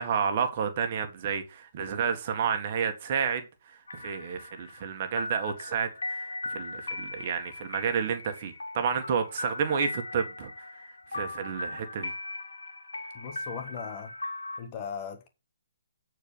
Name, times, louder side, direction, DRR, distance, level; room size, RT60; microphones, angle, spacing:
voice 1, 0.0-3.4 3.9-10.7 11.1-12.1, right 7 dB, 40° right, 1.8 m, -30 dB
sound 1, 3.9-14.6, left 2 dB, 80° left, 2.2 m, -38 dB
voice 2, 13.1-14.1 14.6-15.3, left 7 dB, 30° left, 1.6 m, -38 dB
9.0 x 4.7 x 6.9 m
hypercardioid pair, 145°, 0 cm